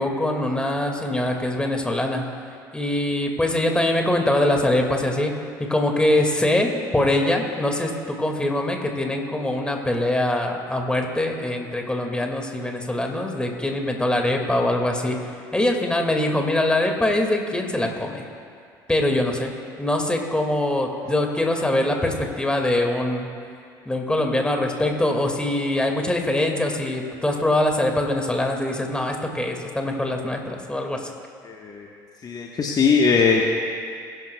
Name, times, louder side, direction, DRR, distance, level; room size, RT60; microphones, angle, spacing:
voice 1, 0.0-2.2 2.7-18.2 18.9-19.5 19.8-23.3 23.9-31.0, left 1 dB, 10° left, 2 dB, 2.0 m, -23 dB
voice 2, 31.4-31.9 32.2-33.4, left 5 dB, 35° left, 0 dB, 1.2 m, -20 dB
22.0 x 11.0 x 2.3 m, 2.3 s
hypercardioid pair, 65°, 11 cm